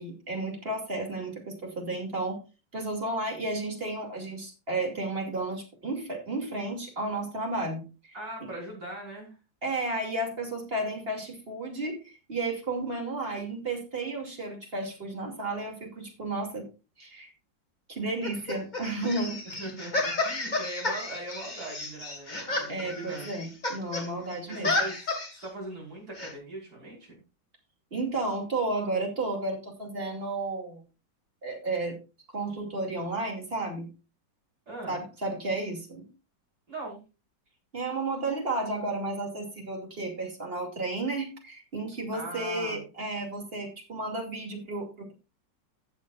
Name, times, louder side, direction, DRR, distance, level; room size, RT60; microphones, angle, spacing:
voice 1, 0.0-2.4 2.7-8.1 8.4-8.5 9.6-16.7 17.0-17.3 17.9-19.4 22.7-24.7 27.9-30.8 31.4-32.0 32.3-33.9 34.9-36.1 37.7-45.1, right 2 dB, 30° right, 1 dB, 2.8 m, -32 dB
voice 2, 8.1-9.4 19.5-23.3 24.1-27.2 34.7-35.0 36.7-37.0 42.1-42.8, right 2 dB, 50° right, -3 dB, 5.5 m, -40 dB
sound 1, 18.2-24.1 24.3-25.5 26.2-26.3, left 2 dB, 25° left, 2.0 m, -32 dB
15.5 x 7.5 x 2.5 m, 0.30 s
omnidirectional pair, 2.0 m